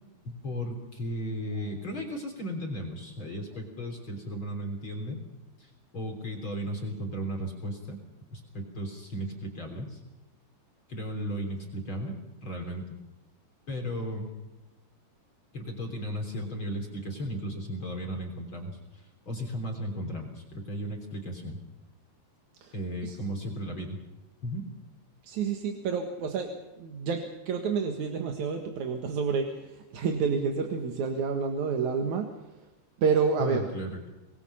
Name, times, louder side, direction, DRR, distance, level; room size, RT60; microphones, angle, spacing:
voice 1, 0.2-5.2 5.6-8.0 8.3-10.0 10.9-12.1 12.4-13.0 13.7-14.3 15.5-21.6 22.7-24.0 24.4-24.6 33.4-34.1, equal, 30° left, 2 dB, 3.8 m, -35 dB
voice 2, 25.2-26.5 26.8-32.3 32.6-32.7 33.0-33.7, right 5 dB, 55° right, 4 dB, 2.6 m, -29 dB
25.5 x 20.5 x 5.7 m, 1.0 s
omnidirectional pair, 4.7 m